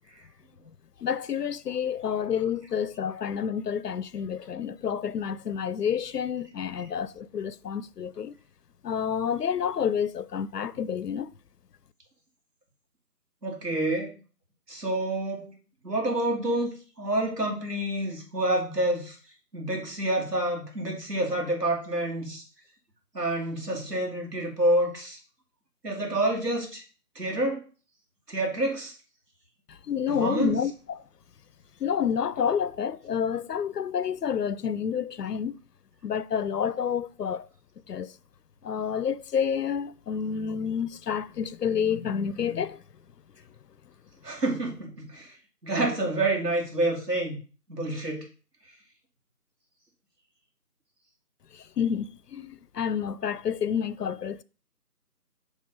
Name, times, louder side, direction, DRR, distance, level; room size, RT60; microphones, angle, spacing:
voice 1, 1.0-8.3 8.8-11.3 29.7-31.0 31.8-35.6 36.0-37.5 37.9-38.2 38.6-42.8 51.5-54.4, left 7 dB, 80° left, 0.5 m, -29 dB
voice 2, 13.4-14.2 14.7-15.5 15.8-16.7 17.0-19.2 19.5-22.4 23.1-25.2 25.8-26.8 27.1-27.7 28.3-28.9 30.1-30.6 44.2-45.4 45.6-47.4 47.7-48.2, right 1 dB, 80° right, 2.8 m, -28 dB
6.1 x 3.4 x 5.5 m
figure-of-eight pair, 170°, 48 cm